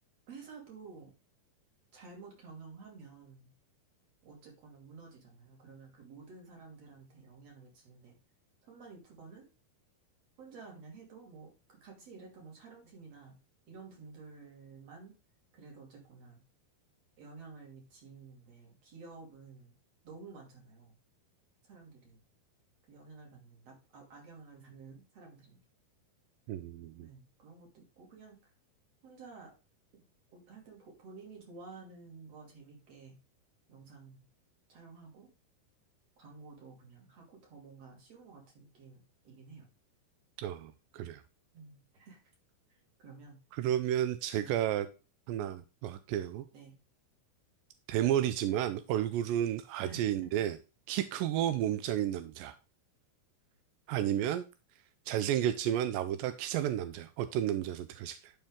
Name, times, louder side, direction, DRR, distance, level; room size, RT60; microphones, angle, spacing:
voice 1, 0.3-1.1 1.9-3.5 4.2-8.2 8.6-9.5 10.4-13.4 13.7-15.2 15.5-16.4 17.2-19.8 20.0-21.0 21.6-22.2 22.9-25.6 27.0-28.5 29.0-29.5 29.9-33.2 33.7-34.2 34.7-35.3 36.2-39.7 41.5-42.2 42.7-43.4 44.4-44.6 46.5-46.8 49.8-50.0, right 4 dB, 45° right, 3.3 m, -52 dB
voice 2, 26.5-27.1 40.4-41.2 43.5-44.9 45.3-46.5 47.9-50.6 50.9-52.6 53.9-54.5 55.1-58.3, right 11 dB, 85° right, 2.0 m, -32 dB
11.5 x 5.4 x 3.7 m
omnidirectional pair, 4.5 m